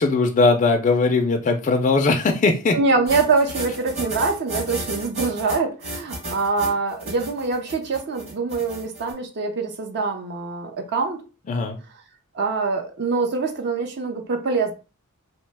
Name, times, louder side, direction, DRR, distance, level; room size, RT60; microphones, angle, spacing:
voice 1, 0.0-2.8 11.5-11.8, left 3 dB, 35° left, 0.3 m, -19 dB
voice 2, 2.7-11.2 12.3-14.7, right 4 dB, 50° right, 0.5 m, -24 dB
sound 1, 3.1-9.1, right 1 dB, 30° right, 1.0 m, -33 dB
2.8 x 2.1 x 3.2 m
head